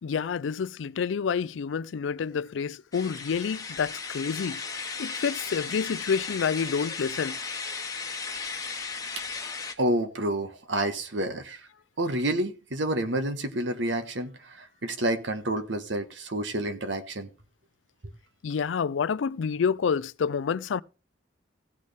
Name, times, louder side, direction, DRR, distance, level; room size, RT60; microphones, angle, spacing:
voice 1, 0.0-4.6 5.0-7.4 18.4-20.8, left 6 dB, 85° left, 0.4 m, -28 dB
sound 1, 2.9-9.7, left 5 dB, 20° left, 1.3 m, -36 dB
voice 2, 9.8-11.6 12.0-14.3 14.8-17.3, right 1 dB, 75° right, 1.4 m, -29 dB
16.5 x 6.4 x 3.4 m
head